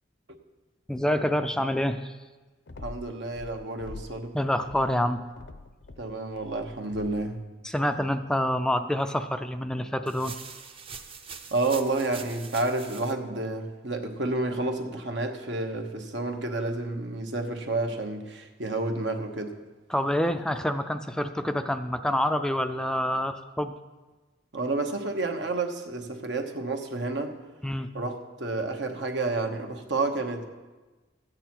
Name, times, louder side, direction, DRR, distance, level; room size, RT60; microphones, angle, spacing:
voice 1, 0.9-2.1 4.3-5.2 7.6-10.3 19.9-23.7 27.6-27.9, left 1 dB, 5° left, 8 dB, 0.3 m, -27 dB
sound 1, 2.7-4.3 4.6-7.4, left 2 dB, 75° left, 0.7 m, -45 dB
voice 2, 2.8-4.4 6.0-7.4 11.5-19.5 24.5-27.4 27.9-30.4, right 2 dB, 75° right, 4 dB, 1.1 m, -30 dB
sound 2, 10.1-13.1, right 6 dB, 30° right, 0.7 m, -43 dB
13.0 x 8.9 x 4.5 m, 1.2 s
head